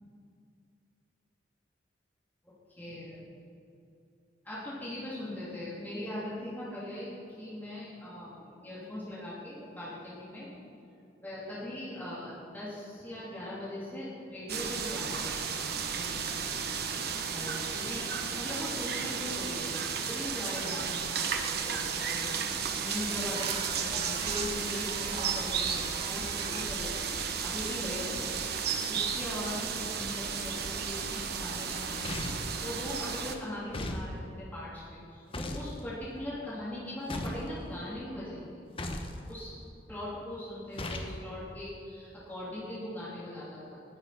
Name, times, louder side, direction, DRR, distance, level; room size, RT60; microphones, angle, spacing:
voice 1, 2.8-3.3 4.4-7.1 7.4-10.5 11.2-16.3 17.2-27.1 27.4-28.2 28.9-38.6 39.3-39.5 39.9-44.0, left 1 dB, 10° left, -9 dB, 3.3 m, -40 dB
sound 1, 14.5-33.4, right 6 dB, 60° right, 1.1 m, -33 dB
sound 2, 19.4-26.6, right 4 dB, 30° right, 0.7 m, -46 dB
sound 3, 32.0-32.5 33.7-34.1 35.3-35.7 37.1-37.5 38.8-39.2 40.8-41.1, left 1 dB, 30° left, 1.1 m, -36 dB
19.0 x 8.0 x 6.0 m, 2.6 s
head